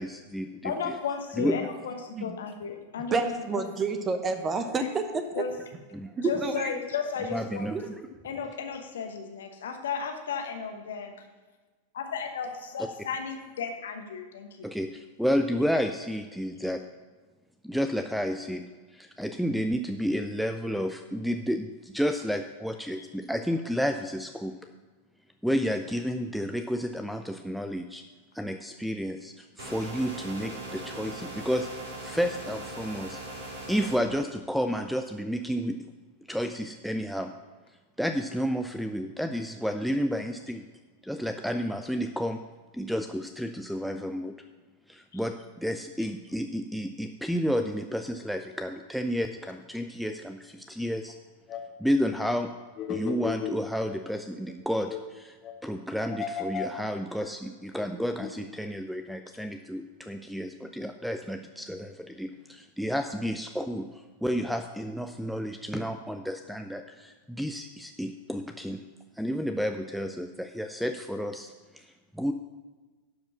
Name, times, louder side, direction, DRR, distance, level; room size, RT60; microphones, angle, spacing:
voice 1, 0.0-1.0 1.4-1.6 5.9-6.1 7.3-8.0 14.6-16.8 17.6-18.6 18.9-24.6 25.4-28.0 28.3-31.7 32.0-33.2 33.7-35.8 36.3-37.3 38.0-40.7 41.0-42.4 42.7-44.4 44.9-51.2 51.8-52.5 52.9-55.4 55.6-68.9 69.2-72.3, equal, ahead, 7 dB, 0.4 m, -31 dB
voice 2, 0.6-3.6 5.3-5.5 6.2-7.7 8.2-11.1 12.0-12.5 12.7-14.7 45.1-45.2, left 6 dB, 65° left, 5 dB, 1.1 m, -34 dB
voice 3, 3.1-5.4 6.2-6.8 7.7-7.8, right 3 dB, 20° right, 8 dB, 0.9 m, -29 dB
sound 1, 29.6-34.0, right 1 dB, 65° right, 2.8 m, -40 dB
sound 2, 51.1-51.2 51.5-51.6 52.0-52.1 52.8-54.2 54.5-54.6 54.9-55.0 55.4-55.5 56.1-56.8 57.2-57.3 57.8-57.9 58.2-58.3, left 8 dB, 30° left, 1.0 m, -34 dB
11.5 x 5.1 x 6.0 m, 1.3 s
figure-of-eight pair, 90°, 0 cm